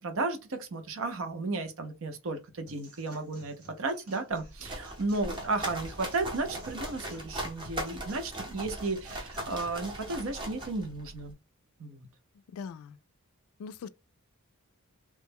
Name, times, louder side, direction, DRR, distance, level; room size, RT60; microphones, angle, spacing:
voice 1, 0.0-11.3 11.8-12.1, right 3 dB, 60° right, 0.6 m, -34 dB
sound 1, 2.7-10.7, right 1 dB, 75° right, 1.4 m, -54 dB
sound 2, 4.3-11.3, right 1 dB, 20° right, 0.7 m, -39 dB
voice 2, 12.5-13.0 13.6-13.9, left 6 dB, 70° left, 0.3 m, -41 dB
3.0 x 2.2 x 3.4 m
head